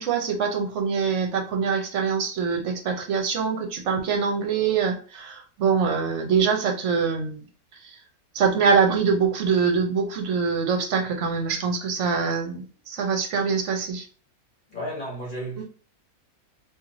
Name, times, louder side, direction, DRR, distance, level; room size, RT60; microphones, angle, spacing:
voice 1, 0.0-7.5 7.8-8.0 8.3-14.0 15.6-15.7, right 6 dB, 60° right, 1.0 m, -24 dB
voice 2, 14.7-15.6, equal, 40° left, 1.3 m, -33 dB
3.1 x 2.7 x 3.7 m
omnidirectional pair, 1.5 m